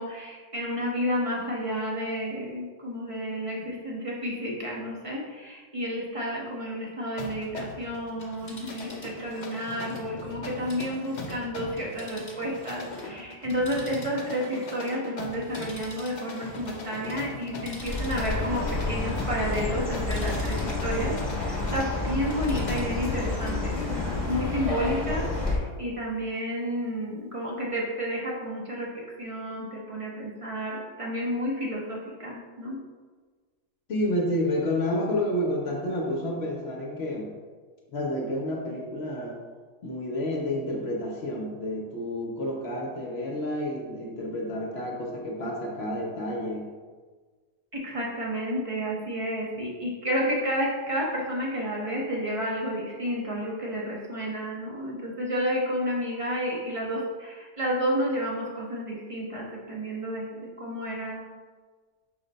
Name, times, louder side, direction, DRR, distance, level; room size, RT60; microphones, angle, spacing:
voice 1, 0.0-32.8 47.7-61.2, equal, 50° right, -4 dB, 0.4 m, -31 dB
sound 1, 7.2-23.0, left 2 dB, 90° left, 0.4 m, -40 dB
Telephone, 8.1-13.1 13.4-21.9 22.2-23.6 24.0-24.1, left 2 dB, 25° left, 1.1 m, -47 dB
Chirp tweet, 17.8-25.6, left 3 dB, ahead, 0.9 m, -29 dB
voice 2, 33.9-37.3 37.9-39.4 39.8-46.7, left 1 dB, 60° left, -1 dB, 0.8 m, -30 dB
5.7 x 2.1 x 3.8 m, 1.4 s
omnidirectional pair, 1.4 m